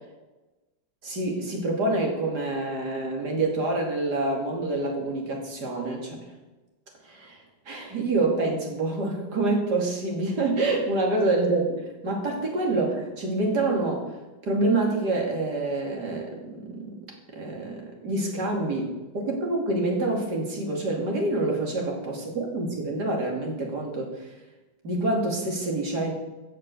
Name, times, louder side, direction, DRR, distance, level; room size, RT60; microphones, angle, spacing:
voice 1, 1.0-6.2 7.0-7.4 7.7-14.2 14.4-16.9 17.3-24.3 24.8-26.1, right 2 dB, 70° right, 1 dB, 3.1 m, -27 dB
15.5 x 6.6 x 6.6 m, 1.1 s
omnidirectional pair, 1.9 m